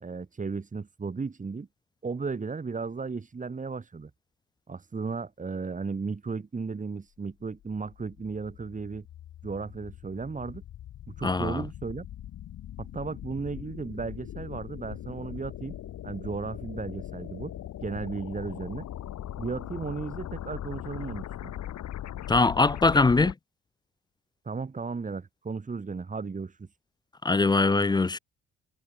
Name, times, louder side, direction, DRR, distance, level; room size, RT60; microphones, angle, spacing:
voice 1, 0.0-1.7 2.0-4.1 4.7-9.1 9.4-10.6 11.2-12.1 12.8-15.8 16.0-17.5 17.8-18.9 19.4-21.5 24.5-26.7, right 4 dB, 25° right, 1.6 m, -35 dB
sound 1, 7.5-23.3, left 12 dB, 65° left, 1.6 m, -40 dB
voice 2, 11.2-11.6 22.3-23.3 27.2-28.2, left 3 dB, 15° left, 0.4 m, -22 dB
cardioid pair, 90°, 30 cm